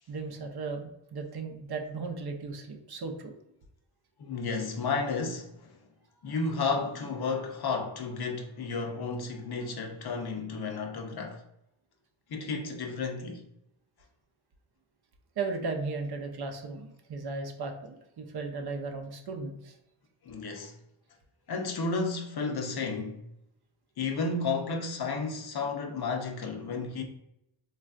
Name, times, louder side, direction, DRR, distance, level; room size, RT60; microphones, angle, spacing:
voice 1, 0.1-3.3 15.4-19.8, right 4 dB, 50° right, 0.6 m, -36 dB
voice 2, 4.2-5.8 6.2-11.4 12.3-13.4 20.2-20.7 21.5-23.2 24.0-27.0, left 4 dB, 50° left, 0.6 m, -32 dB
3.2 x 2.4 x 2.4 m
cardioid pair, 75°, 49 cm